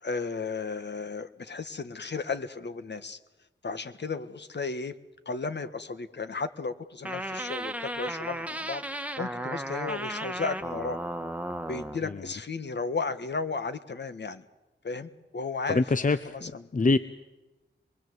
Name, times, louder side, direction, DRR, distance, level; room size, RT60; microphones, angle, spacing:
voice 1, 0.0-3.2 3.6-4.9 5.2-11.0 11.7-14.4 14.8-16.7, left 4 dB, 60° left, 10 dB, 1.6 m, -34 dB
sound 1, 7.1-12.0, right 1 dB, 5° right, 1.7 m, -35 dB
voice 2, 15.7-17.0, left 3 dB, 40° left, 12 dB, 0.9 m, -25 dB
25.5 x 22.5 x 8.0 m, 1.1 s
wide cardioid pair, 85°, 20 cm